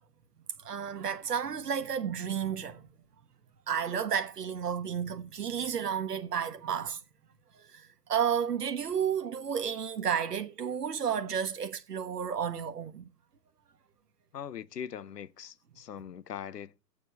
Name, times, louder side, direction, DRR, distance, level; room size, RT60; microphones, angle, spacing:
voice 1, 0.6-2.8 3.7-7.0 7.5-13.0, right 8 dB, 70° right, 1.4 m, -32 dB
voice 2, 14.3-16.8, left 8 dB, 75° left, 0.9 m, -41 dB
8.7 x 6.9 x 7.9 m
hypercardioid pair, 140°, 49 cm